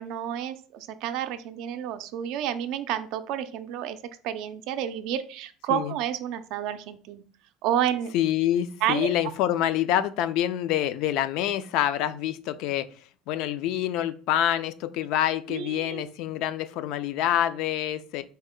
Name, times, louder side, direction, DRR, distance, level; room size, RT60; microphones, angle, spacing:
voice 1, 0.0-4.0 4.2-7.2 7.6-8.1 8.8-9.1 15.5-16.0, right 10 dB, 65° right, 0.4 m, -30 dB
voice 2, 8.1-12.9 13.3-18.2, left 11 dB, 65° left, 0.3 m, -26 dB
4.2 x 2.1 x 3.6 m
cardioid pair, 140°, 0 cm